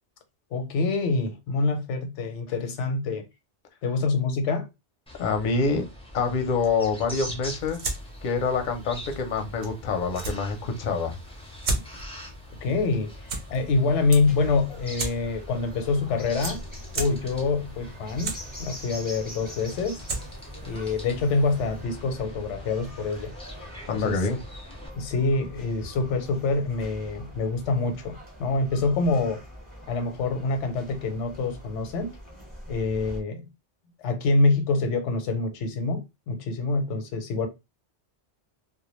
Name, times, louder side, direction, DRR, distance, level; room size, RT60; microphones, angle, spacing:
voice 1, 0.5-3.3 3.8-4.7 12.6-16.6 16.9-20.0 20.6-23.3 24.0-24.1 25.0-29.4 29.9-32.1 32.7-33.4 34.0-37.5, left 3 dB, 85° left, 0.9 m, -26 dB
voice 2, 5.1-5.9 6.1-7.9 8.2-11.6 23.9-24.4, left 4 dB, 55° left, 0.6 m, -26 dB
sound 1, 5.1-24.9, left 1 dB, 10° left, 0.4 m, -43 dB
sound 2, 7.5-21.8, right 3 dB, 50° right, 0.6 m, -38 dB
sound 3, 14.2-33.2, equal, 10° right, 0.8 m, -44 dB
2.2 x 2.1 x 3.0 m
omnidirectional pair, 1.2 m